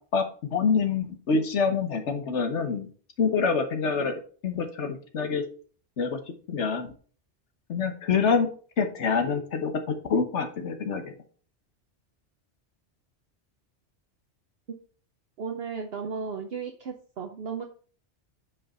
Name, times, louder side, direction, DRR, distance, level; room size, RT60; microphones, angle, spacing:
voice 1, 0.5-2.9 3.2-5.4 6.0-6.2 6.5-6.9 7.7-8.5 8.8-11.1, left 5 dB, 85° left, 7 dB, 1.4 m, -26 dB
voice 2, 15.4-17.6, right 5 dB, 60° right, 3 dB, 1.0 m, -34 dB
8.6 x 5.2 x 4.2 m, 0.41 s
omnidirectional pair, 1.2 m